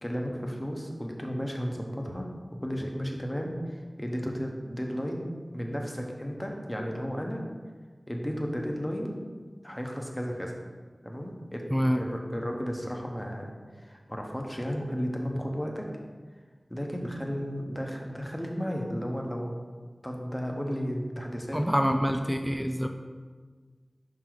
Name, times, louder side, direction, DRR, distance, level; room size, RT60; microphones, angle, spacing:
voice 1, 0.0-5.3 5.5-7.4 8.1-9.2 9.6-10.6 11.0-11.6 11.9-15.9 16.7-19.6 20.0-21.6 21.8-22.0, equal, 15° left, 1 dB, 0.9 m, -34 dB
voice 2, 11.7-12.0 21.5-22.9, equal, 5° right, 5 dB, 0.3 m, -26 dB
5.4 x 4.0 x 4.6 m, 1.5 s
wide cardioid pair, 55°, 0 cm